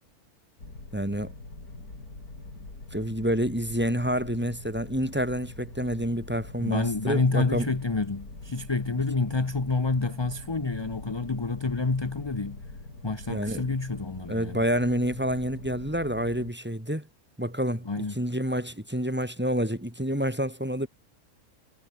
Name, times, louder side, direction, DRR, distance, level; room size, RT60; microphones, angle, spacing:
sound 1, 0.6-16.5, left 2 dB, 75° left, 5.9 m, -44 dB
voice 1, 0.9-1.3 2.9-7.7 13.3-13.7 14.3-17.1 17.4-20.9, equal, 5° right, 3.6 m, -28 dB
voice 2, 6.6-12.6 13.0-14.6 17.8-18.2, left 3 dB, 20° left, 0.9 m, -28 dB
omnidirectional pair, 1.6 m